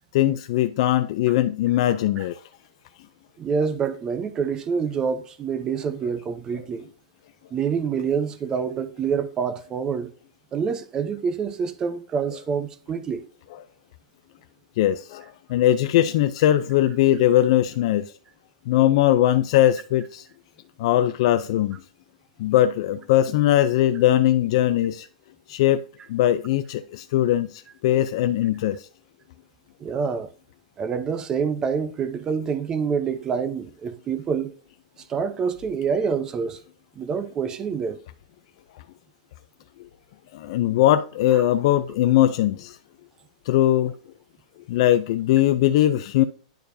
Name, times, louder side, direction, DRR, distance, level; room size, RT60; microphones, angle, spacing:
voice 1, 0.1-2.4 14.8-15.2 15.5-18.0 18.7-20.3 20.8-21.8 22.4-25.1 25.5-25.8 26.1-28.9 40.3-42.8 43.5-43.9 44.7-46.2, left 13 dB, 50° left, 0.4 m, -20 dB
voice 2, 3.4-6.8 7.5-10.1 10.5-13.2 29.8-30.3 30.8-34.5 35.1-36.6 37.0-38.0, right 6 dB, 20° right, 0.7 m, -26 dB
10.5 x 4.6 x 2.6 m
supercardioid pair, 160°, 4 cm